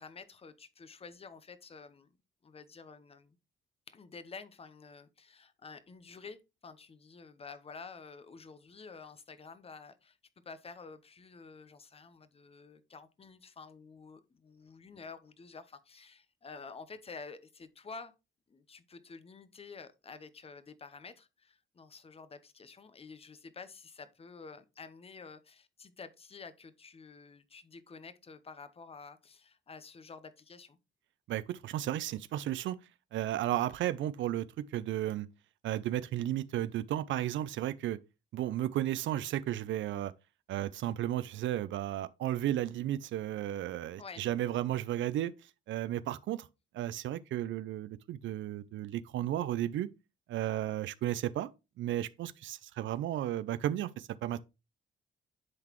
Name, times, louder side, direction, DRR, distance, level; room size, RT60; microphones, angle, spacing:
voice 1, 0.0-2.2 2.4-3.4 3.9-10.2 10.4-18.1 18.5-30.8 44.0-44.3, left 4 dB, 30° left, 0.9 m, -50 dB
voice 2, 31.3-32.8 33.1-35.3 35.6-38.0 38.3-40.1 40.5-46.5 46.7-49.9 50.3-51.5 51.8-54.4, right 12 dB, 70° right, 0.5 m, -34 dB
10.5 x 4.0 x 3.1 m
cardioid pair, 90°, 20 cm